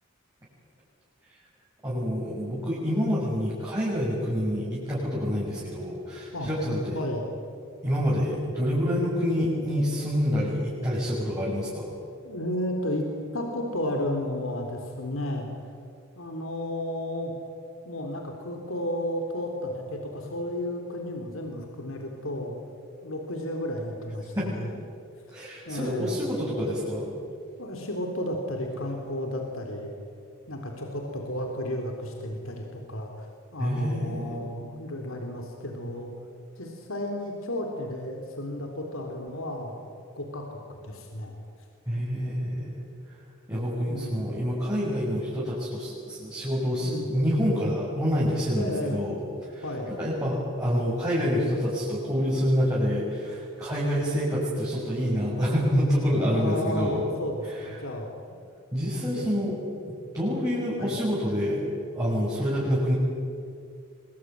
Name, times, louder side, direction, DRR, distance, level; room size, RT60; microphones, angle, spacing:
voice 1, 1.8-7.0 7.8-11.9 24.3-24.5 25.3-27.1 33.6-34.4 41.9-42.8 43.5-49.1 49.5-57.1 58.7-59.6 59.8-61.6 61.9-62.9, equal, 15° right, -7 dB, 7.0 m, -27 dB
voice 2, 12.2-15.5 16.2-17.3 17.9-22.6 23.0-24.7 25.7-26.2 27.6-29.9 30.5-36.1 36.6-39.7 40.2-41.3 42.1-42.5 43.9-44.2 46.8-47.1 48.5-49.0 49.6-49.9 56.2-58.1 58.9-59.5 60.8-60.9, left 1 dB, 75° left, 2 dB, 3.8 m, -33 dB
25.5 x 24.0 x 9.5 m, 2.3 s
head